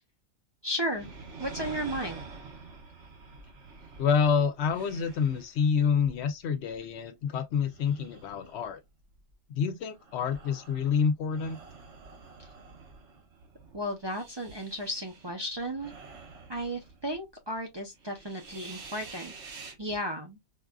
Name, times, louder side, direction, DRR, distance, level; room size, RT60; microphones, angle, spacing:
voice 1, 0.6-1.1 1.4-2.2 12.4-12.5 13.7-15.9 16.5-19.3 19.8-20.4, equal, 30° right, 0.5 m, -34 dB
sound 1, 0.9-7.2 7.6-9.3 9.9-17.3 17.5-17.6 17.9-20.0, right 4 dB, 75° right, 1.3 m, -48 dB
voice 2, 4.0-8.8 9.5-11.6, left 6 dB, 70° left, 0.8 m, -27 dB
4.6 x 2.4 x 2.2 m
omnidirectional pair, 1.2 m